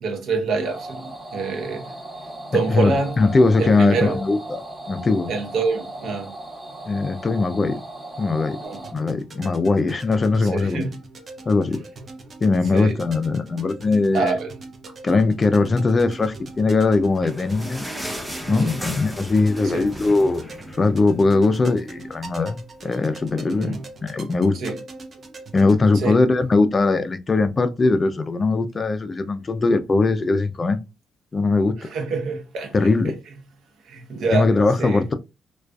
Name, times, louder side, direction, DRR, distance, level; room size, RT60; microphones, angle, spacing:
voice 1, 0.0-1.9 2.5-3.2 3.6-4.2 5.3-6.3 8.6-8.8 10.3-11.0 12.7-13.0 14.1-14.5 18.5-18.8 19.6-19.9 23.4-23.8 24.5-24.8 25.9-26.2 31.8-33.1 33.8-34.5 34.8-35.0, right 4 dB, 75° right, 0.8 m, -26 dB
sound 1, 0.6-8.9, right 1 dB, 25° right, 1.0 m, -37 dB
voice 2, 2.7-4.6 4.9-5.3 6.9-7.8 8.2-8.6 8.9-10.8 11.5-11.8 12.4-14.3 15.0-17.9 18.4-20.5 20.7-24.6 25.5-30.8 31.3-31.9 32.7-33.2 34.3-35.1, left 3 dB, 30° left, 0.3 m, -20 dB
sound 2, 8.6-25.8, right 3 dB, 40° right, 0.7 m, -41 dB
sound 3, 16.8-21.5 21.9-22.0 22.3-22.4 23.1-23.2, equal, 5° right, 0.6 m, -36 dB
2.4 x 2.3 x 2.2 m
cardioid pair, 90°, 0 cm